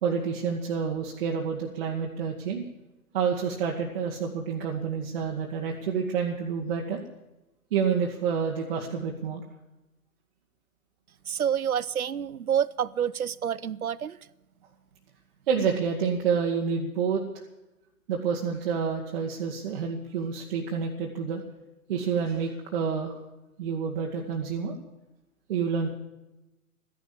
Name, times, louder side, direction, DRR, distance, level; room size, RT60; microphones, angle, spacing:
voice 1, 0.0-2.6 3.1-7.0 7.7-9.4 15.5-17.2 18.1-21.4 21.9-23.1 23.6-24.7 25.5-25.9, right 6 dB, 40° right, 1.8 m, -28 dB
voice 2, 11.3-14.2, right 9 dB, 75° right, 0.7 m, -28 dB
14.0 x 11.0 x 7.5 m
figure-of-eight pair, 120°, 43 cm